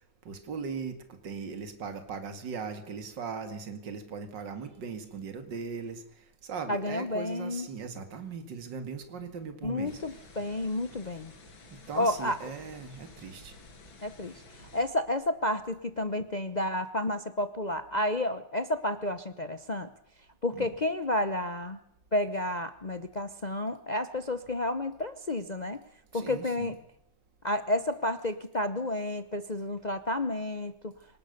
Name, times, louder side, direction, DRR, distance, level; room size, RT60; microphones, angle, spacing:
voice 1, 0.3-1.0 1.2-6.0 6.4-10.0 11.9-13.5 20.6-20.7 26.1-26.7, right 5 dB, 65° right, 9 dB, 2.7 m, -39 dB
voice 2, 6.7-7.7 9.6-11.3 11.9-12.4 14.0-19.9 20.4-21.8 22.1-25.8 26.1-26.7 27.4-30.9, left 1 dB, 40° left, 11 dB, 0.6 m, -31 dB
sound 1, 9.8-14.9, left 3 dB, 85° left, 3.2 m, -52 dB
25.5 x 19.5 x 6.7 m, 0.71 s
omnidirectional pair, 2.1 m